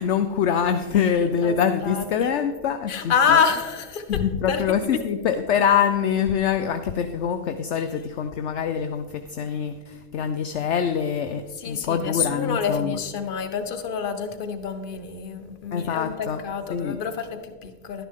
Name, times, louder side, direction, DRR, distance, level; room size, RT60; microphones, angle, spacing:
voice 1, 0.0-3.4 4.1-12.9 15.7-16.4 16.7-17.0, left 7 dB, 55° left, 9 dB, 0.7 m, -24 dB
voice 2, 1.4-2.3 2.9-4.2 4.5-5.0 7.7-7.9 11.5-18.1, left 6 dB, 40° left, 8 dB, 1.1 m, -27 dB
11.5 x 10.0 x 3.7 m, 1.3 s
supercardioid pair, 170°, 40 cm